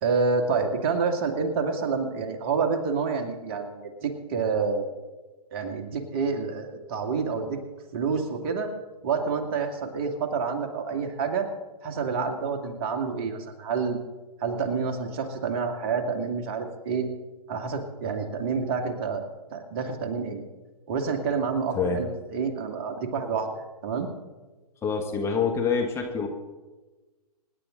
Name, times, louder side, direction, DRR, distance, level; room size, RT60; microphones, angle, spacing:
voice 1, 0.0-4.8 5.5-7.6 7.9-8.7 9.0-11.5 11.8-14.0 14.4-17.1 17.5-20.4 20.9-24.1, right 5 dB, 35° right, 4 dB, 2.1 m, -28 dB
voice 2, 24.8-26.3, left 5 dB, 15° left, 2 dB, 1.4 m, -26 dB
25.5 x 11.0 x 3.9 m, 1.2 s
figure-of-eight pair, 130°, 20 cm